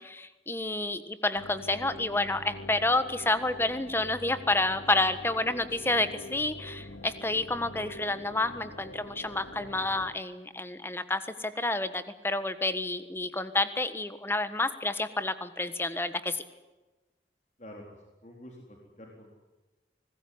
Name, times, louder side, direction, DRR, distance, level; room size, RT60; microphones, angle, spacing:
voice 1, 0.0-16.4, left 2 dB, 15° left, 12 dB, 1.4 m, -29 dB
sound 1, 1.3-10.1, left 1 dB, 90° left, 2.9 m, -45 dB
voice 2, 18.2-19.4, left 1 dB, 40° left, 0 dB, 4.1 m, -48 dB
26.0 x 19.5 x 9.6 m, 1.1 s
head